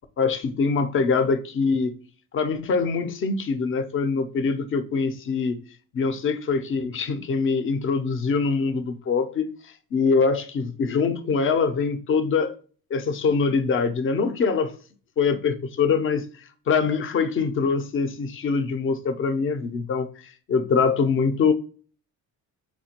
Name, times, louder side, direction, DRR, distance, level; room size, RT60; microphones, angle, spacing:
voice 1, 0.2-2.0 2.3-5.6 5.9-9.5 9.9-12.6 12.9-14.7 15.2-16.2 16.7-21.5, left 5 dB, 35° left, 0.5 m, -23 dB
4.3 x 2.2 x 2.8 m
cardioid pair, 115°, 37 cm